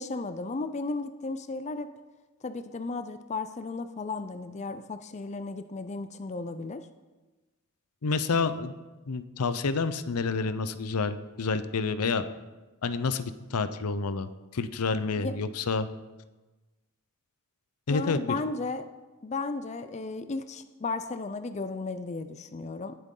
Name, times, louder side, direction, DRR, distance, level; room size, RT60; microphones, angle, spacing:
voice 1, 0.0-1.9 2.4-6.9 15.2-15.3 17.9-18.8 19.2-23.0, left 3 dB, 30° left, 10 dB, 0.4 m, -34 dB
voice 2, 8.0-8.7 9.1-12.2 12.8-15.9 17.9-18.2, left 4 dB, 85° left, 12 dB, 0.6 m, -29 dB
18.5 x 7.8 x 3.8 m, 1.2 s
head